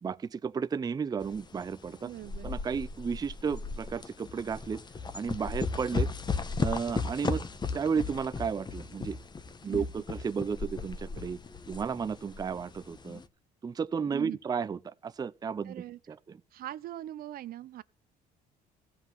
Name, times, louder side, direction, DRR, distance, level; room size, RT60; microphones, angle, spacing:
voice 1, 0.0-2.1 2.4-4.8 5.1-6.1 6.6-7.4 7.7-9.2 9.6-11.4 11.7-13.2 13.6-15.8 16.1-16.4, right 6 dB, 25° right, 0.5 m, -33 dB
sound 1, 1.2-13.2, left 4 dB, 25° left, 1.0 m, -36 dB
voice 2, 2.0-2.5 9.7-9.9 14.1-14.4 15.6-16.0 16.5-17.8, right 13 dB, 60° right, 0.7 m, -41 dB
15.5 x 5.6 x 7.5 m
cardioid pair, 110°, 17 cm